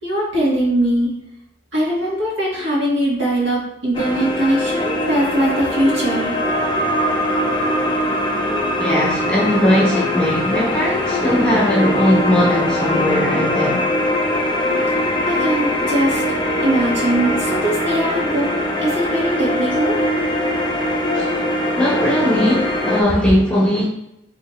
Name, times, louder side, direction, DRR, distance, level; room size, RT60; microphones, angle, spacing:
voice 1, 0.0-1.1 1.7-6.4 15.2-16.2 16.6-18.5 18.8-20.0, right 1 dB, 70° right, -5 dB, 1.7 m, -20 dB
sound 1, 3.9-23.0, left 1 dB, 25° left, 0.5 m, -21 dB
voice 2, 8.8-13.9 21.1-21.4 21.7-23.9, left 1 dB, 5° left, -5 dB, 1.1 m, -18 dB
4.6 x 3.2 x 3.1 m, 0.83 s
head